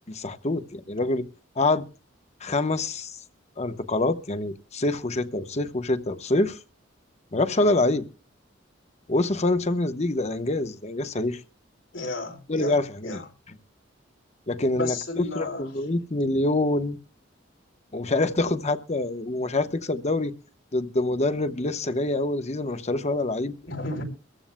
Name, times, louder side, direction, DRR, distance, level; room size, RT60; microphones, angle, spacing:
voice 1, 0.1-1.3 1.6-1.8 2.4-3.1 3.6-6.6 7.3-8.0 9.1-11.4 12.5-13.2 14.5-17.0 17.9-20.3 20.7-23.5, left 2 dB, 35° left, 1.0 m, -25 dB
voice 2, 11.9-13.3 14.7-15.7 23.6-24.0, left 2 dB, 85° left, 3.9 m, -33 dB
23.5 x 15.0 x 2.2 m
head